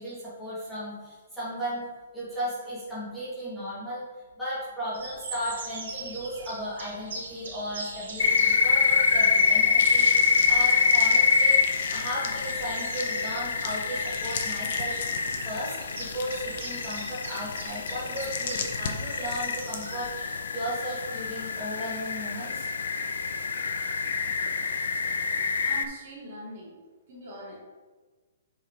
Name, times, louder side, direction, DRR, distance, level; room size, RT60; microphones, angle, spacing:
voice 1, 0.0-1.9 2.1-4.0 4.4-11.6 11.9-15.0 15.4-20.1 20.5-22.7, equal, ahead, -13 dB, 2.0 m, -35 dB
sound 1, 4.9-20.3, right 3 dB, 70° right, 2.1 m, -43 dB
sound 2, 8.2-25.8, left 5 dB, 85° left, 0.5 m, -26 dB
sound 3, 9.8-20.1, left 6 dB, 45° left, 0.8 m, -39 dB
voice 2, 25.6-26.8 27.1-27.6, right 1 dB, 35° right, -5 dB, 2.2 m, -42 dB
7.8 x 4.8 x 3.8 m, 1.3 s
hypercardioid pair, 175°, 0 cm